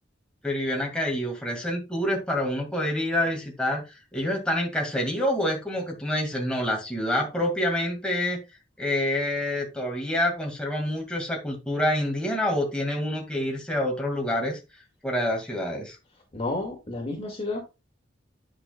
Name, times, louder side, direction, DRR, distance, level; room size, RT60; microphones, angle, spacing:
voice 1, 0.4-8.4 8.8-14.6 15.0-16.0, left 1 dB, 5° left, -1 dB, 2.1 m, -27 dB
voice 2, 16.3-17.8, left 2 dB, 30° left, 1 dB, 2.2 m, -31 dB
9.8 x 6.3 x 2.3 m, 0.25 s
head